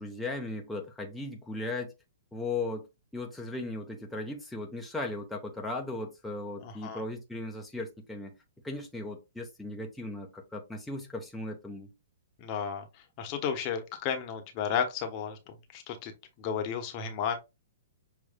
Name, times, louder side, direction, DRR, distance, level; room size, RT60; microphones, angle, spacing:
voice 1, 0.0-1.9 2.3-2.9 3.1-8.4 8.6-11.9, left 2 dB, 5° left, 0.9 m, -37 dB
voice 2, 6.6-7.0 12.4-12.9 13.2-17.4, left 7 dB, 40° left, 1.0 m, -33 dB
6.3 x 3.0 x 2.2 m
hypercardioid pair, 120°, 0 cm